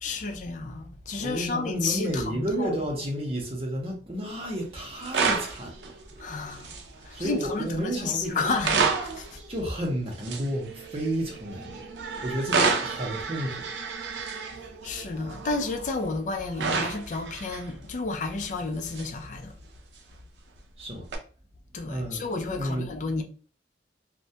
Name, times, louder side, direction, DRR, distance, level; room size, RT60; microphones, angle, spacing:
voice 1, 0.0-2.7 6.2-6.7 7.0-9.4 14.8-19.5 21.7-23.2, left 3 dB, 45° left, 0.4 m, -31 dB
voice 2, 1.2-6.4 7.1-8.5 9.5-13.7 20.8-21.1 21.9-22.3 22.5-22.9, right 1 dB, 35° right, 0.6 m, -32 dB
sound 1, 4.4-4.6 4.8-7.6 8.3-16.2 16.5-17.7 18.1-18.5 18.9-19.1 21.1-21.2, right 5 dB, 85° right, 0.5 m, -31 dB
2.2 x 2.1 x 2.7 m
head